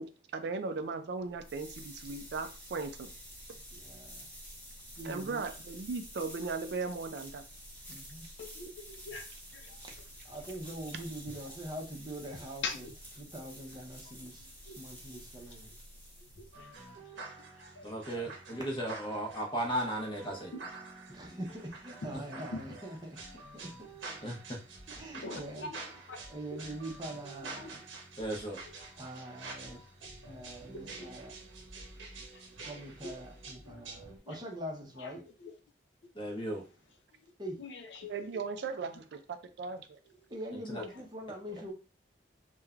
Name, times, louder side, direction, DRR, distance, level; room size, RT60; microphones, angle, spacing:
voice 1, 0.0-3.1 5.0-7.4 10.9-11.0 38.1-40.0, right 4 dB, 60° right, 8 dB, 0.3 m, -37 dB
sound 1, 1.2-17.0, equal, 10° left, 1.0 m, -50 dB
voice 2, 3.7-4.3 5.0-5.4 7.9-8.3 10.2-12.9 13.2-14.4 14.8-15.7 21.1-23.7 25.0-25.7 26.3-27.8 29.0-29.8 30.3-31.3 32.6-35.2 37.4-37.6 40.3-41.7, right 1 dB, 25° right, 0 dB, 0.6 m, -43 dB
voice 3, 8.4-9.3 9.5-9.8 11.3-11.4 12.6-12.9 14.7-14.8 16.4-17.2 17.6-18.3 20.5-20.6 22.5-22.6 25.2-25.8 26.1-26.2 26.5-26.7 27.5-27.8 28.6-28.7 30.7-31.1 31.8-31.9 32.3-32.4 33.0-33.1 33.6-33.7 34.3-34.4 35.0-35.1 35.4-35.5 37.6-38.2 40.7-40.9, left 3 dB, 70° left, 6 dB, 0.5 m, -43 dB
sound 2, 16.5-34.2, right 3 dB, 85° right, 0.8 m, -48 dB
voice 4, 17.8-20.5 22.1-22.2 24.2-24.6 28.2-28.6 36.1-36.6 40.7-40.8, right 1 dB, 25° left, 1 dB, 0.6 m, -35 dB
3.1 x 2.1 x 2.4 m, 0.34 s
head